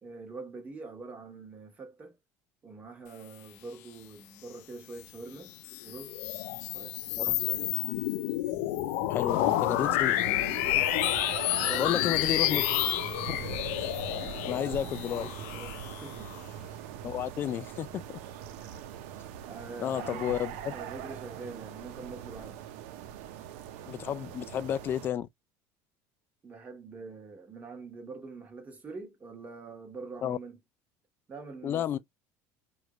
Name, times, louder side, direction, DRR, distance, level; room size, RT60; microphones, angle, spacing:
voice 1, 0.0-2.2 2.6-5.5 5.8-6.2 6.7-7.9 11.5-12.5 14.6-16.3 19.4-22.6 26.4-30.6 31.3-32.0, right 3 dB, 20° right, 1.3 m, -44 dB
sound 1, 5.5-16.4, left 15 dB, 90° left, 0.5 m, -30 dB
sound 2, 7.3-15.1, right 9 dB, 55° right, 0.9 m, -51 dB
voice 2, 9.1-10.2 11.7-12.6 13.3-13.4 13.8-13.9 14.4-15.3 17.0-18.2 18.7-18.8 19.8-20.7 23.9-25.3 30.2-30.4 31.6-32.0, left 10 dB, 30° left, 0.3 m, -32 dB
sound 3, 9.3-25.1, right 9 dB, 90° right, 0.8 m, -41 dB
4.9 x 2.5 x 3.0 m
cardioid pair, 165°, 7 cm